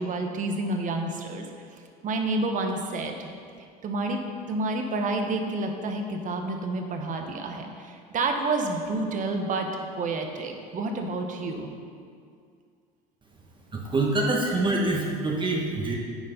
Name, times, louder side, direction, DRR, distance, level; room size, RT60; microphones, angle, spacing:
voice 1, 0.0-1.4 2.0-3.3 3.8-4.2 4.5-11.7, right 2 dB, 45° right, 4 dB, 1.1 m, -29 dB
voice 2, 13.7-15.9, right 2 dB, 25° right, -1 dB, 1.2 m, -25 dB
9.3 x 4.5 x 5.2 m, 2.2 s
supercardioid pair, 85°, 19 cm